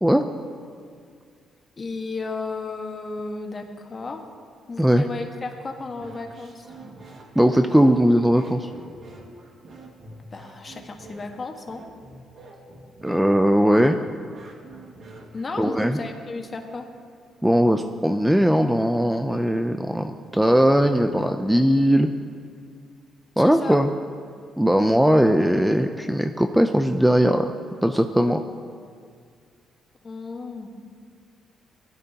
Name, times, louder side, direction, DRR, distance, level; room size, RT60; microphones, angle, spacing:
voice 1, 1.8-4.2 4.7-6.7 10.3-11.8 15.3-16.9 23.4-23.8 30.0-30.7, left 3 dB, 35° left, 3 dB, 1.5 m, -33 dB
sound 1, 5.9-15.7, right 2 dB, 55° right, 1.9 m, -45 dB
voice 2, 7.4-8.7 13.0-14.0 15.6-16.0 17.4-22.1 23.4-23.9 24.6-27.5 27.8-28.4, equal, 5° right, 7 dB, 0.5 m, -19 dB
18.5 x 12.5 x 2.9 m, 2.1 s
cardioid pair, 90°, 0 cm